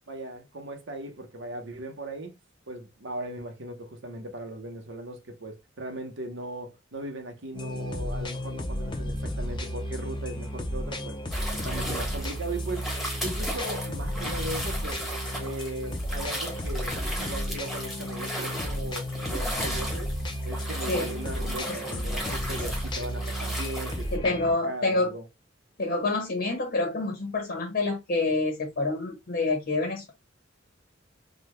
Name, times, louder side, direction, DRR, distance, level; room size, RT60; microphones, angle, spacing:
voice 1, 0.1-2.4 2.7-11.2 11.5-12.9 13.2-15.0 15.4-20.1 20.4-25.2, right 1 dB, 65° right, 0.9 m, -38 dB
sound 1, 7.5-24.5, equal, 25° left, 0.5 m, -33 dB
sound 2, 11.3-24.1, equal, ahead, 1.1 m, -36 dB
voice 2, 24.1-25.1 25.8-30.1, left 2 dB, 55° left, 0.9 m, -27 dB
3.9 x 2.2 x 3.1 m
head